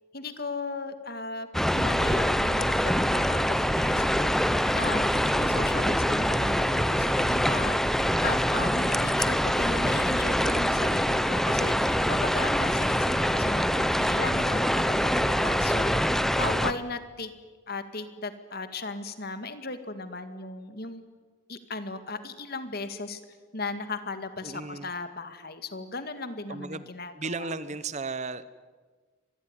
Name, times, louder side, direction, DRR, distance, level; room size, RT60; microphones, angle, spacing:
voice 1, 0.1-7.9 8.2-17.3 17.7-21.0 21.5-23.2 23.5-27.5, left 3 dB, 45° left, 10 dB, 2.0 m, -37 dB
sound 1, 1.5-16.7, equal, ahead, 0.7 m, -25 dB
voice 2, 8.0-8.4 24.4-24.9 26.5-26.9 27.1-28.4, right 3 dB, 35° right, 15 dB, 0.8 m, -35 dB
25.5 x 20.5 x 9.8 m, 1.4 s
head